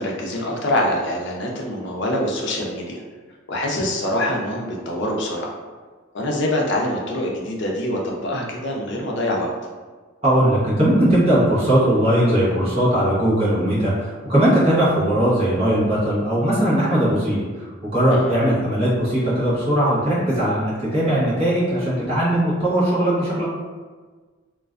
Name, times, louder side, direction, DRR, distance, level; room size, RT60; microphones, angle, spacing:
voice 1, 0.0-3.0 3.5-5.5 6.1-9.5 18.1-18.3, left 1 dB, 60° left, -1 dB, 0.5 m, -24 dB
voice 2, 10.2-23.4, right 1 dB, 30° right, -9 dB, 0.9 m, -19 dB
2.5 x 2.2 x 2.4 m, 1.4 s
head